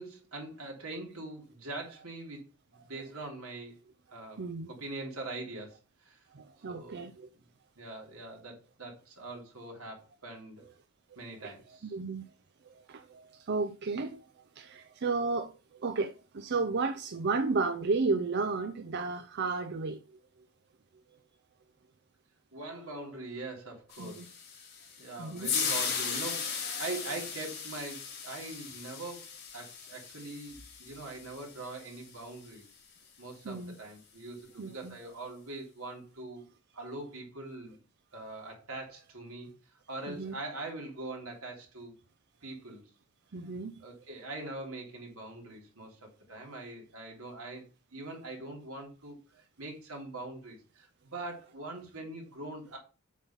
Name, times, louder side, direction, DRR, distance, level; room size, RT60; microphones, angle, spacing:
voice 1, 0.0-3.8 4.1-6.2 6.7-7.4 7.8-10.6 11.2-12.0 22.5-24.3 25.0-29.2 29.5-32.6 33.2-36.4 36.7-37.8 38.1-39.5 39.9-41.9 42.4-42.9 43.8-52.8, right 2 dB, 80° right, 3.4 m, -43 dB
voice 2, 4.4-4.7 6.3-7.3 11.4-11.5 11.9-12.2 12.9-14.2 14.6-20.0 24.0-24.3 25.2-25.5 33.4-33.7 34.6-34.9 40.1-40.3 43.3-43.7, right 4 dB, 50° right, 0.6 m, -33 dB
sound 1, 23.9-32.2, left 6 dB, 50° left, 2.9 m, -37 dB
8.2 x 4.1 x 5.6 m
head